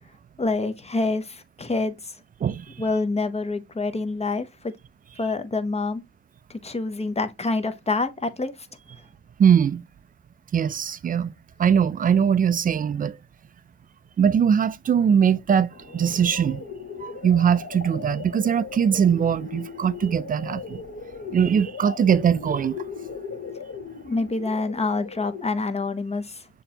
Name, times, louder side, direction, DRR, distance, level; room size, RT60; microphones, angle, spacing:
voice 1, 0.4-2.2 2.8-4.7 5.2-6.0 6.5-8.7 24.1-26.5, left 3 dB, 20° left, 0.6 m, -27 dB
voice 2, 9.4-9.9 10.5-11.3 11.6-13.2 14.2-16.6 17.0-20.8 21.3-22.8, right 8 dB, 30° right, 0.3 m, -21 dB
sound 1, 15.7-25.7, left 5 dB, 45° left, 1.2 m, -38 dB
6.7 x 2.8 x 2.7 m
cardioid pair, 90°, 30 cm